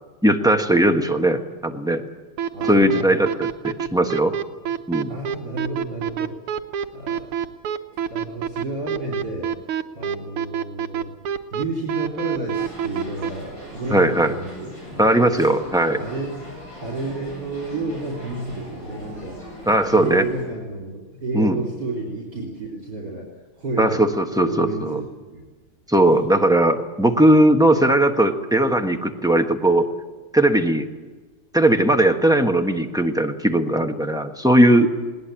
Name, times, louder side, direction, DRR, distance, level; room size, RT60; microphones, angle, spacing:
voice 1, 0.2-2.0 2.7-4.3 4.9-5.1 13.9-14.3 15.0-16.0 19.7-20.2 21.3-21.6 23.8-25.0 25.9-29.9 30.3-30.9 31.5-34.9, right 1 dB, ahead, 4 dB, 1.0 m, -18 dB
sound 1, 2.4-13.3, right 8 dB, 80° right, 1.9 m, -26 dB
voice 2, 2.5-3.2 5.1-6.4 6.9-7.5 7.9-9.5 10.0-14.7 16.0-16.5 16.8-19.6 19.9-23.3 23.6-24.1 24.4-25.0 25.3-25.5 26.1-26.2, right 2 dB, 50° right, -1 dB, 4.0 m, -31 dB
sound 2, 12.5-20.4, equal, 55° left, 8.4 m, -40 dB
20.5 x 19.0 x 9.0 m, 1.3 s
omnidirectional pair, 2.4 m